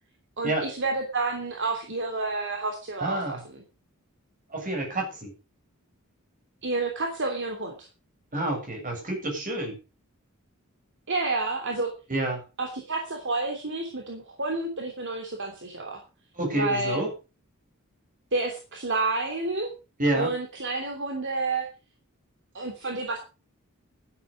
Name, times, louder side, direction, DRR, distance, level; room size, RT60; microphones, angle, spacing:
voice 1, 0.4-3.6 6.6-7.9 11.1-11.9 12.6-16.0 16.5-17.0 18.3-19.7 20.1-21.7 22.5-23.2, right 3 dB, 60° right, 2 dB, 3.1 m, -30 dB
voice 2, 3.0-3.4 4.5-5.3 8.3-9.8 12.1-12.4 16.3-17.1 20.0-20.3, right 1 dB, 40° right, 3 dB, 7.4 m, -28 dB
12.5 x 11.5 x 5.3 m, 0.32 s
head